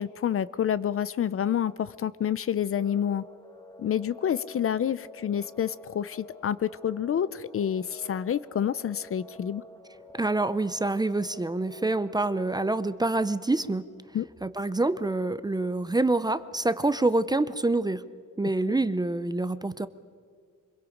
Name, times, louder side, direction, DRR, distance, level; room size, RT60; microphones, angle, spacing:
voice 1, 0.0-3.2 3.8-9.6 14.1-14.3, left 9 dB, 45° left, 17 dB, 0.5 m, -28 dB
sound 1, 2.8-12.9, left 1 dB, 10° left, 1.1 m, -50 dB
voice 2, 10.1-13.8 14.4-18.0 18.4-19.9, right 2 dB, 15° right, 13 dB, 0.5 m, -26 dB
25.5 x 22.5 x 5.0 m, 2.1 s
wide cardioid pair, 155°, 31 cm